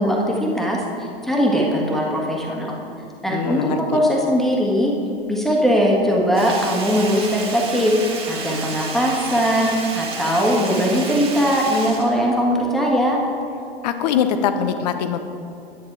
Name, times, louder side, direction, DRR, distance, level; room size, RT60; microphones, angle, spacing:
voice 1, 0.0-2.8 3.2-4.9 5.3-7.9 8.3-9.7 9.9-13.2, equal, ahead, -2 dB, 1.6 m, -20 dB
voice 2, 3.3-4.0 13.8-15.2, left 8 dB, 40° left, 9 dB, 0.8 m, -22 dB
Sink (filling or washing), 6.3-12.9 13.2-13.3, right 4 dB, 20° right, 1.6 m, -32 dB
10.5 x 9.3 x 4.7 m, 2.9 s
figure-of-eight pair, 100°, 31 cm